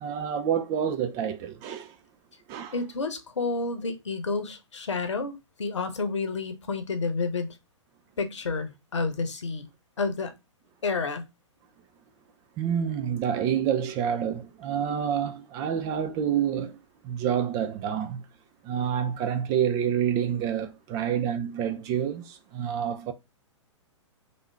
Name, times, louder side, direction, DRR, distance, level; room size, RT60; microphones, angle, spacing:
voice 1, 0.0-1.9 2.5-2.7 12.6-16.8 17.0-18.2 18.6-23.1, right 8 dB, 20° right, 0.4 m, -28 dB
voice 2, 2.7-5.3 5.6-7.5 8.2-9.7 10.0-10.3 10.8-11.2, left 4 dB, 65° left, 0.9 m, -30 dB
3.4 x 2.6 x 3.3 m
figure-of-eight pair, 110°, 16 cm